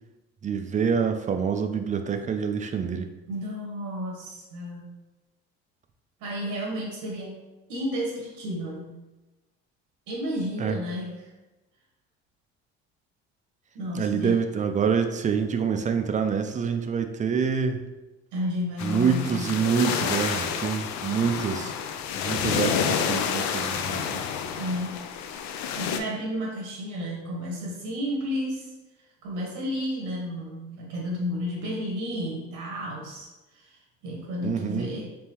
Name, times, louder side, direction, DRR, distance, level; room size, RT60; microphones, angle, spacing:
voice 1, 0.4-3.1 10.6-10.8 13.9-17.8 18.8-21.7 22.2-24.2 34.4-34.9, right 6 dB, 25° right, 6 dB, 0.4 m, -26 dB
voice 2, 3.3-4.9 6.2-7.4 7.7-8.9 10.1-11.3 13.7-14.4 18.3-19.5 24.6-25.0 25.7-28.7 29.2-33.3 33.5-35.1, equal, 80° right, -2 dB, 1.0 m, -32 dB
sound 1, 18.8-26.0, left 7 dB, 60° left, 0.5 m, -29 dB
3.6 x 3.3 x 2.9 m, 1.1 s
supercardioid pair, 85°, 31 cm